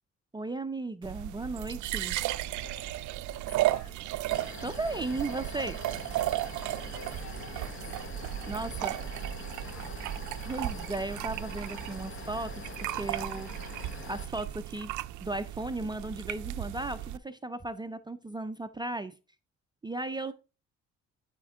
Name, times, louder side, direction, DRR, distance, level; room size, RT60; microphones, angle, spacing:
voice 1, 0.3-2.2 4.6-5.8 8.5-9.0 10.5-13.7 14.0-14.9 15.2-19.1 19.8-20.3, right 2 dB, 15° right, 0.4 m, -36 dB
sound 1, 1.0-17.2, right 15 dB, 75° right, 0.4 m, -35 dB
voice 2, 2.2-4.2 6.8-8.0 8.6-10.2 20.1-20.3, left 5 dB, 60° left, 1.8 m, -53 dB
sound 2, 4.3-14.2, left 5 dB, 40° left, 1.1 m, -45 dB
12.0 x 4.5 x 3.5 m
cardioid pair, 90°, 30 cm